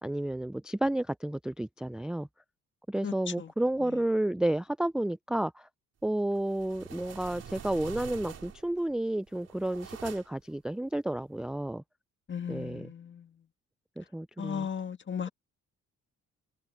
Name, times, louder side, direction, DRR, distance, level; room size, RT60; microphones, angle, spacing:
voice 1, 0.0-2.3 2.9-5.7 6.0-11.8 12.5-12.9 14.0-14.7, right 1 dB, 5° right, 0.4 m, -31 dB
voice 2, 3.0-3.5 12.3-13.3 14.4-15.3, left 7 dB, 40° left, 1.6 m, -36 dB
sound 1, 6.3-8.8 9.3-10.5, right 8 dB, 55° right, 4.2 m, -46 dB
cardioid pair, 90°, 30 cm